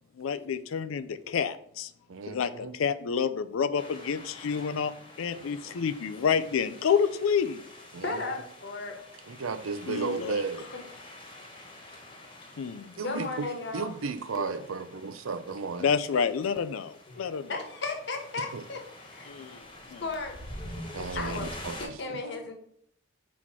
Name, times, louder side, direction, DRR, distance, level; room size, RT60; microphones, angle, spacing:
voice 1, 0.2-1.9 2.3-4.9 5.2-7.6 9.9-10.4 12.6-12.9 14.4-14.5 15.8-17.6 19.3-19.5 19.9-20.0 21.0-21.4, left 6 dB, 85° left, 0.4 m, -29 dB
voice 2, 2.1-2.7 5.2-5.8 7.9-8.2 9.3-10.7 13.0-15.9 18.5-18.6 20.9-22.2, right 4 dB, 85° right, 0.6 m, -35 dB
sound 1, 3.8-21.9, left 1 dB, 25° left, 1.3 m, -47 dB
voice 3, 8.0-8.9 12.9-13.9 17.1-17.2 17.5-18.8 19.1-19.6 20.0-20.3 21.1-21.4 21.8-22.5, left 3 dB, 60° left, 1.2 m, -35 dB
4.6 x 4.2 x 5.8 m
head